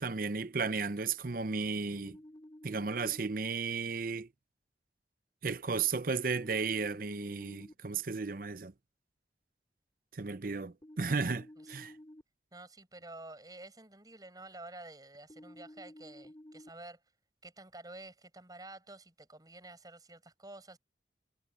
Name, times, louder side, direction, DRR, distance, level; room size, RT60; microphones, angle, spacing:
voice 1, 0.0-2.2 2.6-4.3 5.4-8.7 10.1-11.9, right 4 dB, 55° right, 0.7 m, -34 dB
sound 1, 1.9-3.2 6.3-7.7 10.8-12.2 15.3-16.7, left 1 dB, 25° left, 3.0 m, -52 dB
voice 2, 12.5-17.0 17.4-20.8, right 2 dB, 20° right, 5.9 m, -50 dB
head